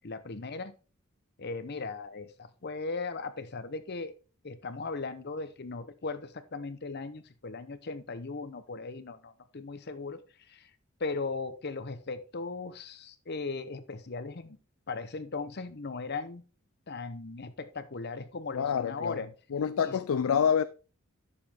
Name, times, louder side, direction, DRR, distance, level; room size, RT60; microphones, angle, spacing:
voice 1, 0.0-0.7 1.4-4.1 4.4-10.2 10.5-10.6 11.0-14.6 14.9-16.4 16.9-19.3 19.8-20.0, left 3 dB, 50° left, 0.8 m, -38 dB
voice 2, 18.5-19.2 19.5-20.6, left 7 dB, 75° left, 0.4 m, -27 dB
10.0 x 6.8 x 3.5 m
head